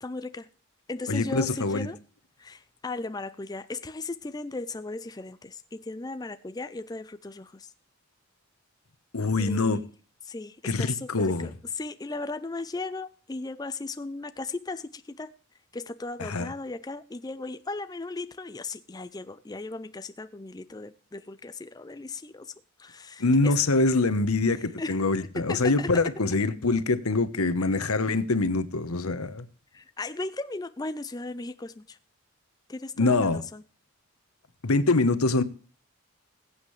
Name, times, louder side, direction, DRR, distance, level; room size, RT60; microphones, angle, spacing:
voice 1, 0.0-0.5 0.9-2.0 2.4-7.7 9.4-9.9 10.3-15.3 15.7-22.5 22.8-23.6 24.8-25.0 25.3-25.9 27.6-27.7 29.7-32.0 32.7-33.6, left 3 dB, 20° left, 0.4 m, -36 dB
voice 2, 1.1-1.9 9.1-9.8 10.6-11.5 16.2-16.5 23.2-29.4 33.0-33.4 34.6-35.4, left 3 dB, 90° left, 1.1 m, -24 dB
20.5 x 8.3 x 3.2 m
head